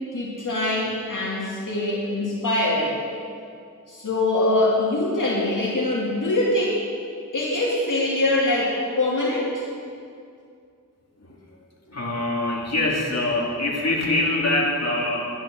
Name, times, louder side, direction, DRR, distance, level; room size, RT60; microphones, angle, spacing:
voice 1, 0.1-3.0 3.9-6.8 7.3-9.6, left 2 dB, 70° left, -5 dB, 2.3 m, -23 dB
voice 2, 11.9-15.3, left 2 dB, 50° left, -3 dB, 2.5 m, -24 dB
11.0 x 10.5 x 6.5 m, 2.3 s
wide cardioid pair, 55°, 33 cm